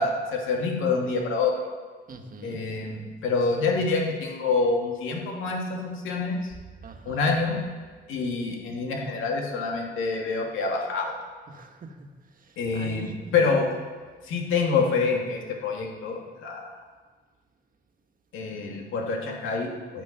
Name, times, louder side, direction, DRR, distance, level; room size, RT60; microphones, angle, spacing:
voice 1, 0.0-1.7 2.4-6.5 7.1-7.6 8.1-11.1 12.6-13.7 14.2-16.7 18.3-20.0, left 4 dB, 85° left, 0 dB, 2.3 m, -27 dB
voice 2, 2.1-2.6 6.8-7.4 11.5-13.3, right 3 dB, 45° right, 4 dB, 1.7 m, -44 dB
13.0 x 8.3 x 6.0 m, 1.5 s
cardioid pair, 90°, 20 cm